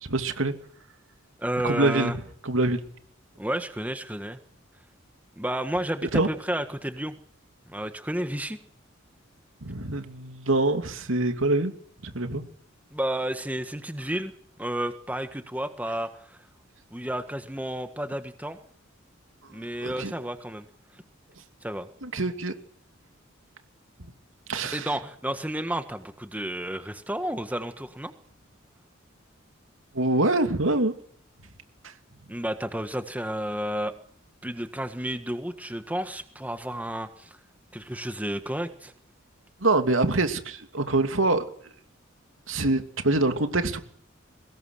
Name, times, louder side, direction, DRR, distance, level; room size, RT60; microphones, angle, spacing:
voice 1, 0.0-0.5 1.6-2.1 2.4-2.9 6.1-6.3 9.6-11.7 12.0-12.4 19.8-20.1 22.0-22.5 24.5-24.9 29.9-30.9 39.6-41.4 42.5-43.8, right 2 dB, 80° right, 7 dB, 2.7 m, -25 dB
voice 2, 1.4-2.2 3.4-4.4 5.4-7.1 7.7-8.6 12.9-14.3 14.6-16.1 16.9-18.6 19.5-20.6 21.6-21.9 24.7-28.1 32.3-33.9 34.4-37.4 37.7-38.9, right 1 dB, 10° right, 8 dB, 1.6 m, -31 dB
23.5 x 20.5 x 6.5 m, 0.62 s
head